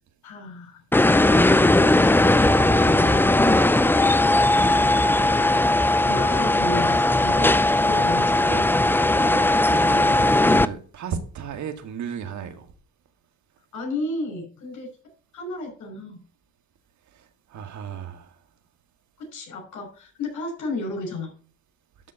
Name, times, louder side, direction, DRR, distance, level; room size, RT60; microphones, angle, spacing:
voice 1, 0.2-0.8 5.3-5.5 6.1-8.5 13.7-14.9 15.3-16.2 19.2-21.3, left 2 dB, 75° left, 5.6 m, -33 dB
sound 1, 0.9-10.7, left 1 dB, 5° left, 0.5 m, -18 dB
voice 2, 9.1-12.7 17.1-18.3, right 7 dB, 70° right, 2.0 m, -35 dB
12.0 x 4.3 x 8.0 m
cardioid pair, 90°, 30 cm